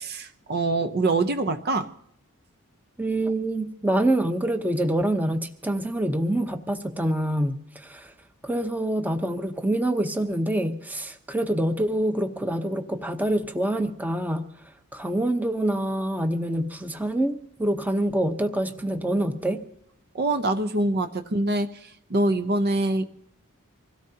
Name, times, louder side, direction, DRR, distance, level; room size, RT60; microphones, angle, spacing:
voice 1, 0.0-1.9 20.1-23.0, right 2 dB, 50° right, 8 dB, 0.8 m, -25 dB
voice 2, 3.0-8.1 8.4-14.5 14.9-19.6, right 1 dB, 10° right, 6 dB, 0.9 m, -26 dB
25.0 x 17.0 x 2.8 m, 0.73 s
head